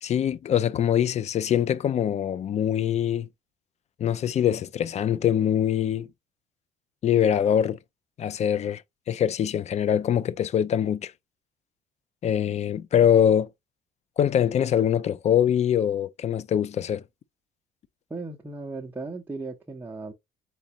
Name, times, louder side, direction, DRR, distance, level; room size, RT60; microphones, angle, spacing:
voice 1, 0.0-3.3 4.0-6.1 7.0-7.8 8.2-8.8 9.1-11.1 12.2-13.5 14.2-17.0, left 9 dB, 40° left, 0.4 m, -23 dB
voice 2, 18.1-20.1, right 3 dB, 10° right, 0.7 m, -36 dB
4.5 x 3.9 x 2.8 m
cardioid pair, 110°, 17 cm